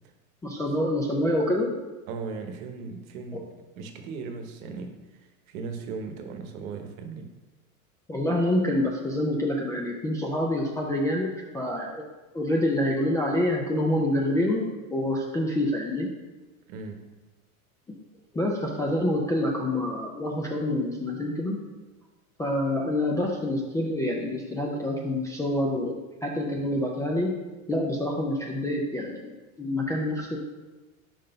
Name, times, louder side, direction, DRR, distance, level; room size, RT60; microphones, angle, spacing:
voice 1, 0.4-1.8 3.3-3.4 8.1-12.0 12.3-14.6 14.9-16.1 18.3-21.6 22.4-25.9 26.2-27.3 27.7-29.3 29.6-30.4, left 1 dB, 10° left, -2 dB, 0.3 m, -27 dB
voice 2, 2.1-3.5 3.8-7.3 16.7-17.0, right 4 dB, 65° right, 5 dB, 1.0 m, -37 dB
5.2 x 3.7 x 5.3 m, 1.2 s
hypercardioid pair, 105°, 44 cm